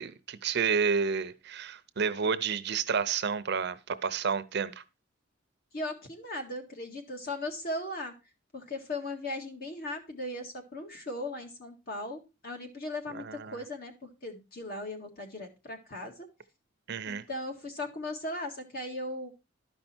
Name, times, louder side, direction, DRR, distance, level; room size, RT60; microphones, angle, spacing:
voice 1, 0.0-4.8 13.2-13.6 16.9-17.2, right 6 dB, 60° right, 0.6 m, -30 dB
voice 2, 5.7-8.1 8.5-16.3 17.1-19.3, left 1 dB, 50° left, 1.9 m, -38 dB
12.0 x 5.4 x 4.3 m
head